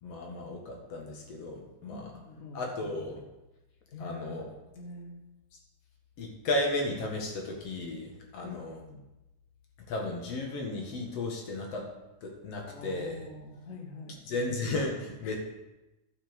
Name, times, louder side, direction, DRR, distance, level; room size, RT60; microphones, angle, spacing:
voice 1, 0.0-2.1 2.5-3.2 4.0-4.5 6.2-8.8 9.9-11.9 12.2-13.3 14.1-15.4, left 2 dB, 55° left, 0 dB, 2.6 m, -34 dB
voice 2, 1.9-2.6 3.9-4.2 4.8-5.2 8.4-9.0 12.6-14.2 15.2-15.4, left 2 dB, 75° left, 3 dB, 0.7 m, -45 dB
12.5 x 5.8 x 5.4 m, 0.98 s
omnidirectional pair, 3.5 m